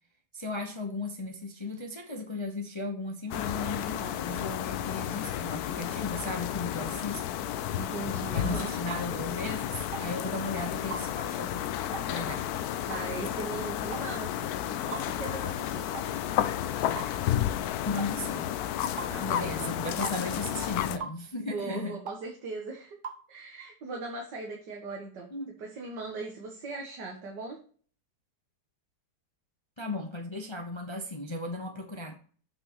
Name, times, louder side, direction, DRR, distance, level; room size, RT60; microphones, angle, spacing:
voice 1, 0.3-7.2 8.3-12.7 17.8-18.5 19.2-22.0 25.3-25.5 29.8-32.1, left 2 dB, 20° left, 0.8 m, -36 dB
sound 1, 3.3-21.0, left 11 dB, 70° left, 1.0 m, -32 dB
voice 2, 7.7-8.7 12.9-14.3 14.8-15.8 19.1-19.8 21.4-23.0 23.3-25.3 25.6-27.6, right 3 dB, 80° right, 2.0 m, -39 dB
sound 2, 8.9-9.1 9.9-10.1 10.9-11.1 11.9-12.1 12.9-13.1 13.9-14.1 14.9-15.1 15.9-16.1 17.0-17.2 18.0-18.1 19.0-19.1 20.0-20.2 21.0-21.2 22.1-22.2 23.0-23.2, right 5 dB, 65° right, 0.5 m, -39 dB
7.7 x 5.8 x 3.0 m
omnidirectional pair, 1.8 m